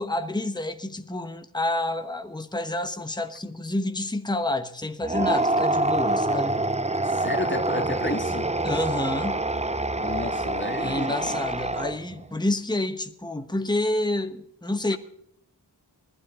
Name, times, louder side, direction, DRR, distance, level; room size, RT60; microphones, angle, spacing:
voice 1, 0.0-6.6 8.6-9.4 10.8-15.0, left 2 dB, 10° left, 1.1 m, -28 dB
sound 1, 5.0-12.2, right 2 dB, 15° right, 0.7 m, -26 dB
voice 2, 7.0-8.5 10.0-11.1, left 2 dB, 25° left, 2.1 m, -31 dB
20.0 x 12.5 x 3.7 m
wide cardioid pair, 50°, 42 cm